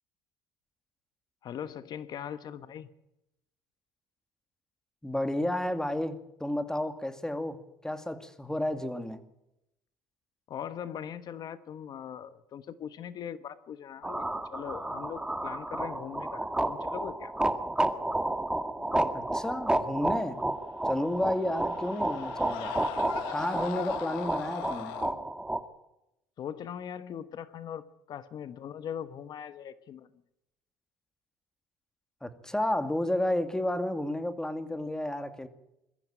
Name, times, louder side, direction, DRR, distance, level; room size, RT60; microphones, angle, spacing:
voice 1, 1.4-2.9 10.5-14.3 14.5-17.3 26.4-27.8 28.1-30.1, left 9 dB, 55° left, 13 dB, 1.2 m, -40 dB
voice 2, 5.0-9.2 19.1-20.4 20.8-22.8 23.3-25.0 32.2-35.5, left 1 dB, 5° left, 9 dB, 2.5 m, -31 dB
sound 1, 14.0-25.6, right 1 dB, 10° right, 1.9 m, -31 dB
Screaming, 20.7-25.1, left 14 dB, 80° left, 1.5 m, -40 dB
22.0 x 14.5 x 9.1 m, 0.87 s
supercardioid pair, 85°, 9 cm